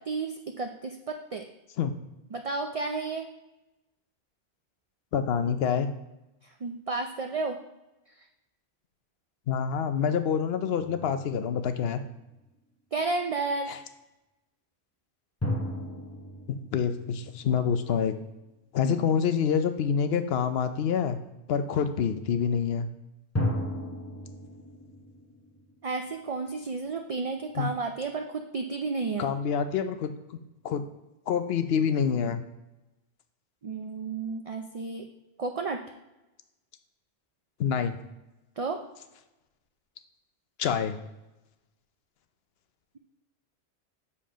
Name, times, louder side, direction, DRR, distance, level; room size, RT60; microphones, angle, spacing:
voice 1, 0.1-1.4 2.3-3.2 6.6-7.6 12.9-13.7 18.8-18.9 25.8-29.3 33.6-35.1 35.4-35.8 38.6-38.8, right 3 dB, 45° right, 4 dB, 0.5 m, -32 dB
voice 2, 5.1-5.9 9.5-12.0 13.7-13.8 16.5-18.1 18.7-21.2 21.5-22.9 27.6-27.7 29.2-30.4 30.6-30.8 31.3-32.4 37.6-38.0 40.6-41.0, left 7 dB, 70° left, 9 dB, 0.9 m, -27 dB
sound 1, 12.2-12.4 15.4-18.1 23.3-26.3, left 1 dB, 15° left, 0.8 m, -35 dB
7.4 x 4.2 x 5.0 m, 0.99 s
omnidirectional pair, 1.1 m